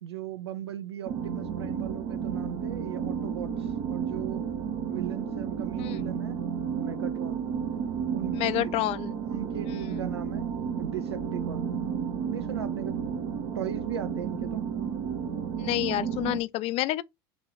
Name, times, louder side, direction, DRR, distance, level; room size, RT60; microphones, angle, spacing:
voice 1, 0.0-4.5 4.9-6.4 6.8-7.4 8.1-8.8 9.3-11.7 11.9-12.0 12.3-13.0 13.5-14.7, right 11 dB, 90° right, 0.6 m, -38 dB
sound 1, 1.1-16.4, right 7 dB, 60° right, 1.0 m, -32 dB
voice 2, 8.3-9.2 9.7-9.9 15.6-17.0, left 16 dB, 50° left, 0.4 m, -29 dB
3.4 x 3.1 x 3.9 m
hypercardioid pair, 85°, 13 cm